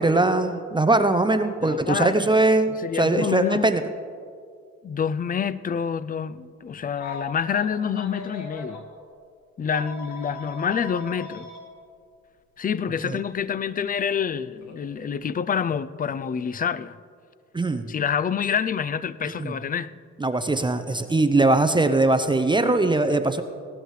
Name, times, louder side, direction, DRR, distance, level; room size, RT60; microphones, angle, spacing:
voice 1, 0.0-3.8 17.5-17.8 19.2-19.5 20.2-23.4, right 2 dB, 15° right, 0.6 m, -21 dB
voice 2, 1.6-2.4 2.8-3.7 4.8-8.9 9.6-11.5 12.6-17.0 17.9-19.9, left 7 dB, 30° left, 0.4 m, -27 dB
Telephone, 6.9-8.8 9.7-11.6 12.9-13.1 14.6-14.8, left 2 dB, 65° left, 1.9 m, -39 dB
17.5 x 12.0 x 3.2 m
cardioid pair, 90°, 30 cm